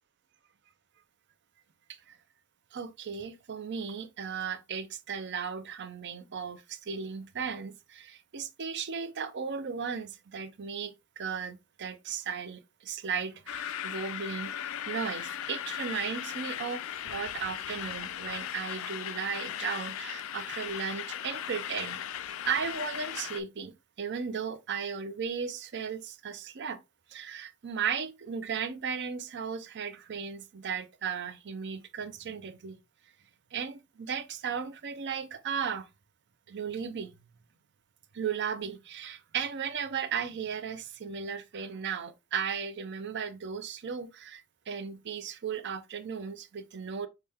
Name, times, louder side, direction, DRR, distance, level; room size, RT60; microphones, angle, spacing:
voice 1, 2.7-22.0 22.5-26.8 27.1-32.8 33.5-35.9 36.5-37.1 38.1-47.1, right 6 dB, 50° right, 0.5 m, -36 dB
sound 1, 13.5-23.4, left 10 dB, 65° left, 0.4 m, -37 dB
5.9 x 2.2 x 3.4 m
head